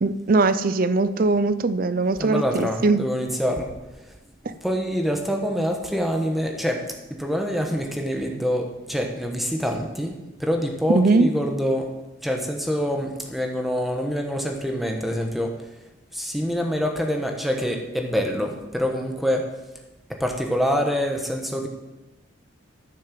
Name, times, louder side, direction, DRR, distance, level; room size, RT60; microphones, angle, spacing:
voice 1, 0.0-3.0 10.9-11.3, right 3 dB, 45° right, 14 dB, 0.5 m, -20 dB
voice 2, 2.2-3.7 4.5-11.9 12.2-15.6 16.1-19.6 20.1-21.7, equal, ahead, 2 dB, 1.2 m, -26 dB
10.5 x 6.4 x 7.6 m, 1.1 s
head